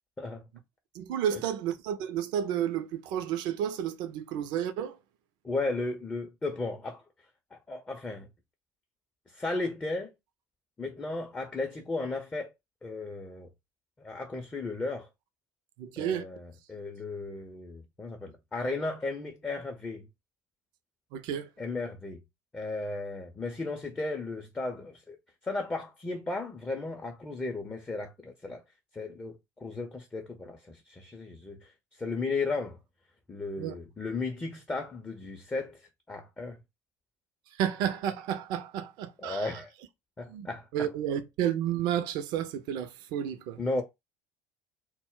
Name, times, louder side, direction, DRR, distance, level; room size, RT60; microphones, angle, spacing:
voice 1, 0.9-5.0 15.8-16.2 21.1-21.5 33.6-33.7 37.6-39.5 40.3-40.5 40.7-43.6, right 9 dB, 50° right, 0.4 m, -31 dB
voice 2, 5.4-7.0 7.5-8.3 9.3-10.1 10.8-12.5 12.8-13.5 14.0-15.1 16.0-20.1 21.6-22.2 22.5-25.2 25.4-28.6 28.9-32.8 33.3-36.6 39.2-39.7 40.2-40.9 43.6-43.8, left 3 dB, 15° left, 0.5 m, -35 dB
2.1 x 2.0 x 3.7 m
figure-of-eight pair, 65°, 9 cm